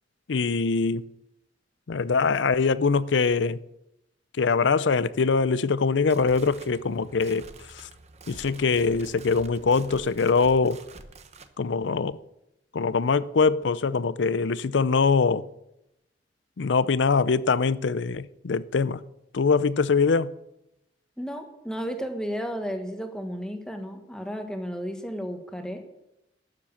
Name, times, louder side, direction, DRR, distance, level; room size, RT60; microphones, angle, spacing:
voice 1, 0.3-1.0 1.9-3.6 4.4-7.9 8.3-10.8 11.6-12.1 12.7-15.5 16.6-19.0 19.3-20.3, left 4 dB, 75° left, 0.5 m, -23 dB
sound 1, 5.9-11.5, right 3 dB, 35° right, 0.9 m, -47 dB
voice 2, 21.2-25.8, equal, 5° left, 1.4 m, -33 dB
12.5 x 7.6 x 7.2 m
head